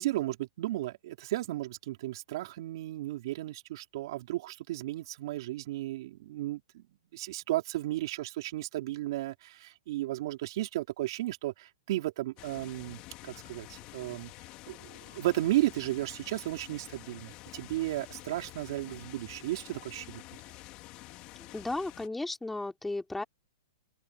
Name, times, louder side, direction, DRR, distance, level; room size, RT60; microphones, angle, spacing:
voice 1, 0.0-6.9 7.1-14.3 14.7-20.2, right 16 dB, 55° right, 3.8 m, -34 dB
sound 1, 12.4-22.1, left 19 dB, 35° left, 3.2 m, -49 dB
voice 2, 21.5-23.2, left 2 dB, 5° left, 3.5 m, -34 dB
open air
hypercardioid pair, 140°, 3 cm